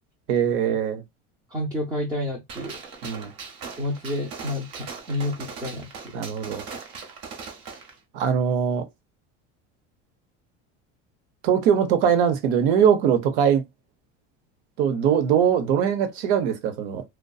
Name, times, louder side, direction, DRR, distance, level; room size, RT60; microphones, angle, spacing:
voice 1, 0.3-1.0 3.0-3.3 6.1-6.6 8.1-8.9 11.4-13.6 14.8-17.0, right 8 dB, 80° right, 0.8 m, -21 dB
voice 2, 1.5-2.8 3.8-5.9, left 1 dB, 10° right, 0.6 m, -29 dB
Gunshot gunfire, 2.5-7.9, right 5 dB, 50° right, 1.0 m, -40 dB
2.6 x 2.2 x 2.3 m
supercardioid pair, 130°, 34 cm